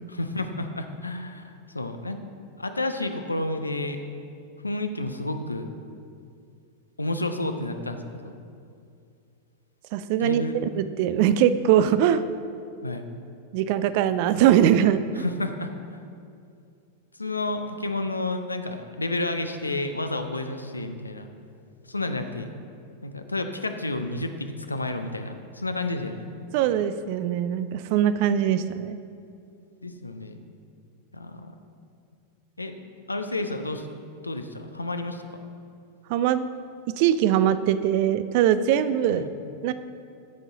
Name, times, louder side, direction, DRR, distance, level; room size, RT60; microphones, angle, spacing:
voice 1, 0.1-2.2 2.6-4.0 4.6-5.7 7.0-8.3 10.2-10.6 12.8-13.1 15.1-16.0 17.1-21.3 21.9-22.5 23.0-26.2 29.8-30.4 31.1-31.5 32.6-33.9 34.2-35.4 39.1-39.3, left 2 dB, 80° left, 7 dB, 0.5 m, -31 dB
voice 2, 9.9-10.4 10.8-12.2 13.5-15.2 26.5-29.0 36.1-36.5 37.0-39.3 39.6-39.7, right 10 dB, 45° right, 13 dB, 0.4 m, -21 dB
13.0 x 5.4 x 3.9 m, 2.4 s
figure-of-eight pair, 90°, 0 cm